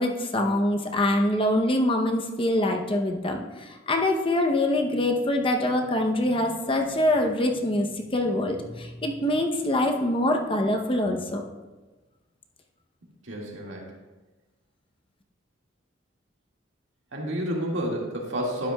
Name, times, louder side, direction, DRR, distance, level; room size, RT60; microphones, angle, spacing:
voice 1, 0.0-11.4, left 1 dB, 30° left, 3 dB, 0.7 m, -24 dB
voice 2, 13.2-13.9 17.1-18.7, equal, 70° right, -2 dB, 2.0 m, -30 dB
12.0 x 9.1 x 2.3 m, 1.2 s
head